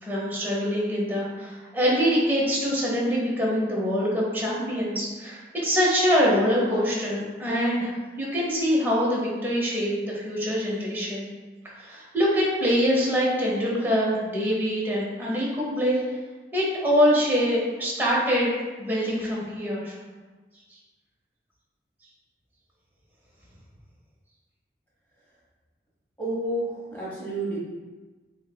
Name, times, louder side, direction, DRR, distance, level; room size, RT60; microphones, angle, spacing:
voice 1, 0.0-11.3 11.7-16.0 16.5-18.5 18.8-19.9, equal, 10° right, -6 dB, 0.8 m, -24 dB
voice 2, 26.2-27.6, right 1 dB, 10° left, -8 dB, 1.1 m, -30 dB
6.1 x 2.1 x 2.2 m, 1.3 s
head